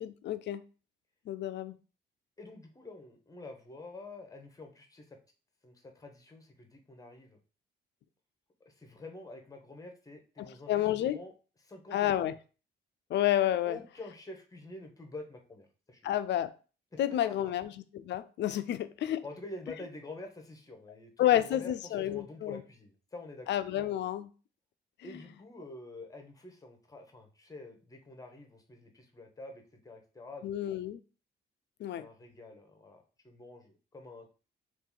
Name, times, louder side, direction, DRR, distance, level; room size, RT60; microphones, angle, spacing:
voice 1, 0.0-0.6 1.3-1.7 10.4-11.2 11.9-12.3 13.1-13.8 16.0-16.5 17.0-19.2 21.2-22.6 23.5-24.3 30.4-31.0 31.8-32.0, left 12 dB, 60° left, 13 dB, 0.4 m, -30 dB
voice 2, 2.4-5.2 5.6-7.4 8.6-11.3 11.6-12.3 13.7-16.1 17.2-17.5 19.2-23.5 25.0-30.6 32.0-34.3, left 2 dB, 15° left, 5 dB, 0.8 m, -47 dB
2.9 x 2.5 x 3.7 m, 0.36 s
cardioid pair, 90°, 20 cm